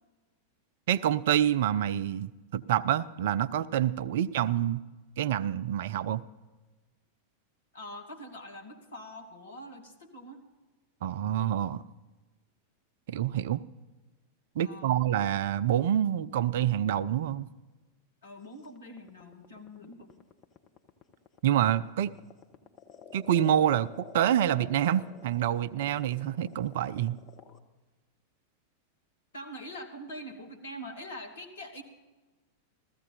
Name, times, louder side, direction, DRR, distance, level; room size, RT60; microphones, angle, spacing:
voice 1, 0.9-4.8 5.2-6.2 11.0-11.8 13.1-13.6 14.6-17.5 21.4-22.1 23.1-23.9 24.1-27.2, right 11 dB, 55° right, 18 dB, 0.4 m, -27 dB
voice 2, 7.7-10.4 14.6-15.0 18.2-20.2 29.3-31.8, equal, 65° left, 4 dB, 1.9 m, -44 dB
sound 1, 18.6-27.6, left 7 dB, 30° left, 1.1 m, -49 dB
15.0 x 14.5 x 4.0 m, 1.2 s
figure-of-eight pair, 90°, 0 cm